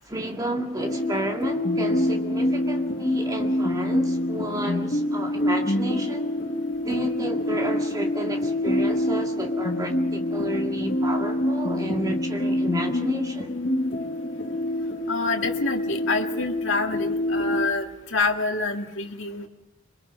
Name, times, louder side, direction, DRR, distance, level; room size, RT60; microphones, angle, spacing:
voice 1, 0.1-6.3 6.8-13.5, right 1 dB, 15° right, 2 dB, 2.0 m, -31 dB
sound 1, 0.8-17.7, left 1 dB, 40° left, 0.9 m, -26 dB
voice 2, 15.1-19.5, left 3 dB, 65° left, 3 dB, 1.9 m, -27 dB
26.5 x 22.5 x 5.2 m, 0.95 s
head